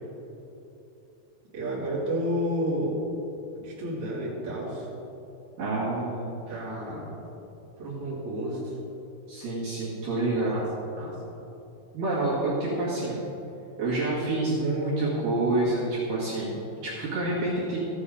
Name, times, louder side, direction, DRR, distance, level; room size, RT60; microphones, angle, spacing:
voice 1, 1.5-3.0 3.5-4.9 6.5-7.2 7.8-8.7 10.5-10.6 11.0-11.1, equal, 35° right, -7 dB, 2.9 m, -31 dB
voice 2, 5.6-6.6 9.3-10.6 11.9-13.3 13.8-17.8, right 2 dB, 60° right, -9 dB, 3.2 m, -28 dB
14.5 x 8.4 x 3.7 m, 3.0 s
omnidirectional pair, 4.9 m